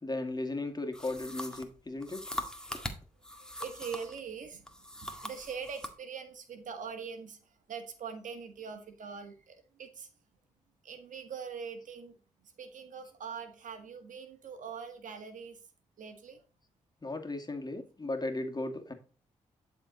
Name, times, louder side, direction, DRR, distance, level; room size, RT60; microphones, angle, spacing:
voice 1, 0.0-2.2 17.0-18.9, left 2 dB, 30° left, 5 dB, 2.2 m, -36 dB
sound 1, 0.9-4.2 4.7-6.0, equal, 5° left, 1.9 m, -41 dB
voice 2, 3.4-10.1 10.8-12.2 12.4-15.6 16.0-16.4, right 6 dB, 70° right, 7 dB, 1.7 m, -43 dB
11.0 x 4.5 x 4.1 m, 0.36 s
supercardioid pair, 40°, 14 cm